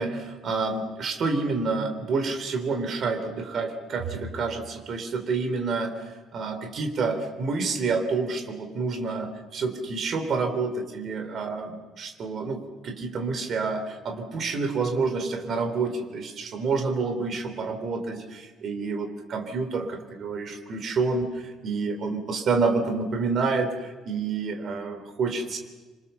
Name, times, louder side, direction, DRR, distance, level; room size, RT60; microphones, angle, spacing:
voice 1, 0.0-5.9 6.3-21.3 21.6-25.6, right 4 dB, 35° right, 6 dB, 3.3 m, -28 dB
27.5 x 25.0 x 7.0 m, 1.3 s
cardioid pair, 175°, 0 cm